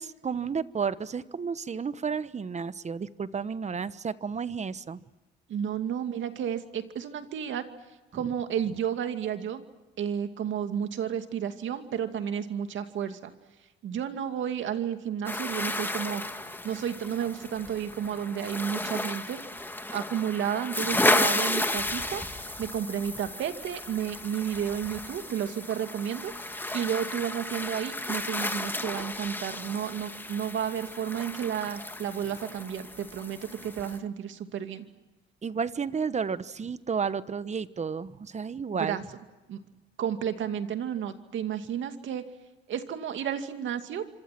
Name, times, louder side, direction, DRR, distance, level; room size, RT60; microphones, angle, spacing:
voice 1, 0.0-5.0 35.4-39.0, right 6 dB, 35° right, 15 dB, 1.1 m, -32 dB
voice 2, 5.5-7.6 8.1-9.6 10.0-13.3 13.8-16.2 16.6-19.4 19.9-22.2 22.6-34.9 38.7-39.0 39.5-39.6 40.0-42.2 42.7-44.0, right 9 dB, 75° right, 7 dB, 2.4 m, -32 dB
sound 1, 15.3-34.0, left 1 dB, 10° left, 1.9 m, -33 dB
28.0 x 25.5 x 6.1 m, 1.1 s
cardioid pair, 90°, 20 cm